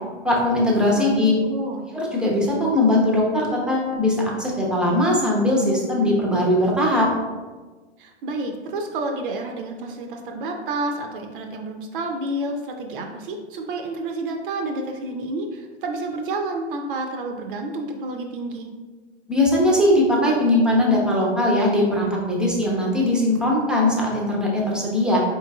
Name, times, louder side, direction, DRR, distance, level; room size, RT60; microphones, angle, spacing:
voice 1, 0.2-1.3 1.9-7.1 19.3-25.2, left 1 dB, ahead, -3 dB, 0.6 m, -20 dB
voice 2, 0.9-1.8 8.0-18.7, right 2 dB, 50° right, 3 dB, 0.5 m, -30 dB
4.4 x 3.0 x 2.3 m, 1.3 s
hypercardioid pair, 115°, 35 cm